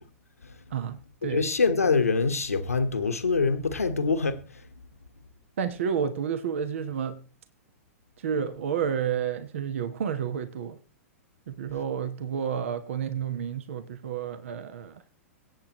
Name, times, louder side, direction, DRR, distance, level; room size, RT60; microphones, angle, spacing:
voice 1, 0.7-1.5 5.6-7.2 8.2-10.8 11.5-15.0, right 7 dB, 60° right, 1.2 m, -30 dB
voice 2, 1.2-4.4, left 4 dB, 80° left, 1.3 m, -24 dB
23.5 x 8.6 x 3.1 m
figure-of-eight pair, 100°, 8 cm